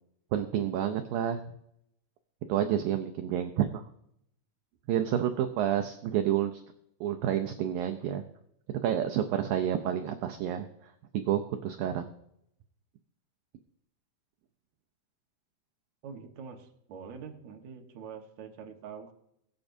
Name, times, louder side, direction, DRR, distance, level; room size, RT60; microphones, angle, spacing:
voice 1, 0.3-1.4 2.5-3.8 4.9-6.6 7.0-8.2 8.8-10.7 11.1-12.1, right 10 dB, 80° right, 6 dB, 2.0 m, -29 dB
voice 2, 16.0-19.1, right 6 dB, 65° right, 3 dB, 1.9 m, -45 dB
22.5 x 8.3 x 2.6 m, 0.76 s
omnidirectional pair, 4.9 m